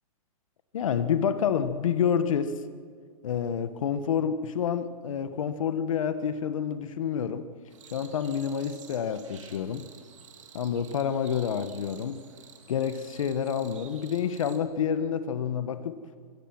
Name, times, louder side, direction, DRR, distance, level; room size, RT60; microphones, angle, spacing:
voice 1, 0.7-2.6 3.2-7.5 7.9-9.8 10.5-12.2 12.7-16.0, left 8 dB, 60° left, 10 dB, 1.4 m, -28 dB
sound 1, 7.7-14.6, right 8 dB, 55° right, 2.9 m, -51 dB
26.5 x 21.5 x 6.1 m, 2.1 s
hypercardioid pair, 165°, 19 cm